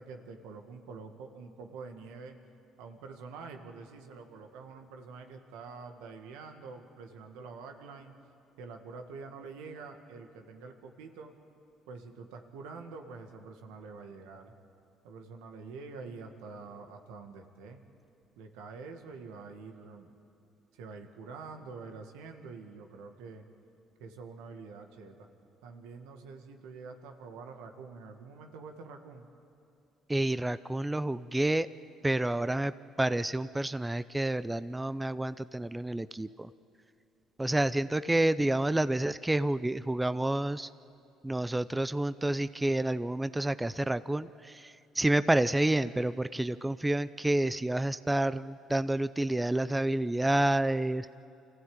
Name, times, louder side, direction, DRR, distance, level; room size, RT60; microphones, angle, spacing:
voice 1, 0.0-2.4 2.8-8.1 8.6-11.3 11.9-14.5 15.0-17.8 18.4-20.1 20.7-23.5 24.0-25.3 25.6-29.3 32.5-32.6, right 4 dB, 85° right, 5 dB, 1.9 m, -46 dB
voice 2, 30.1-31.7 32.0-36.5 37.4-40.7 41.2-51.1, right 1 dB, 10° right, 14 dB, 0.5 m, -29 dB
25.5 x 15.5 x 8.8 m, 2.6 s
supercardioid pair, 75°, 0 cm